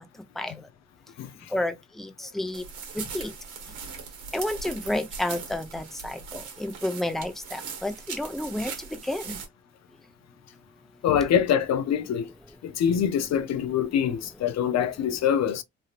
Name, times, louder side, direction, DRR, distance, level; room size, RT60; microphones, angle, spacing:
sound 1, 2.5-9.5, right 5 dB, 80° right, 1.3 m, -40 dB
voice 1, 4.3-6.1 6.6-8.7 9.1-9.4, left 1 dB, ahead, 0.6 m, -30 dB
voice 2, 11.0-12.3 12.6-15.6, left 8 dB, 60° left, 0.5 m, -24 dB
3.3 x 2.7 x 2.4 m
cardioid pair, 90°, 30 cm